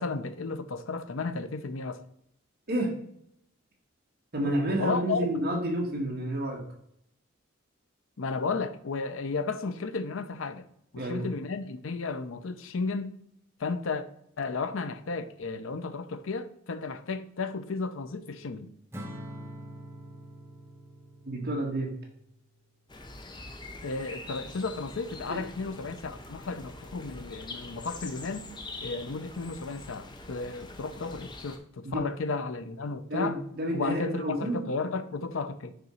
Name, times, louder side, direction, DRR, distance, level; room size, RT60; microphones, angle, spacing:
voice 1, 0.0-2.0 4.4-5.3 8.2-10.7 10.9-13.1 13.6-14.0 14.4-18.7 23.8-28.5 28.8-33.4 33.7-35.7, left 4 dB, 80° left, 0.6 m, -33 dB
voice 2, 4.3-6.6 11.0-11.2 21.2-21.9 25.3-25.4 31.8-32.1 33.1-34.6, right 1 dB, 50° right, 1.4 m, -30 dB
Acoustic guitar / Strum, 18.9-22.3, equal, 10° right, 0.9 m, -44 dB
sound 1, 22.9-31.6, left 2 dB, 20° left, 0.6 m, -44 dB
6.8 x 3.7 x 4.3 m
head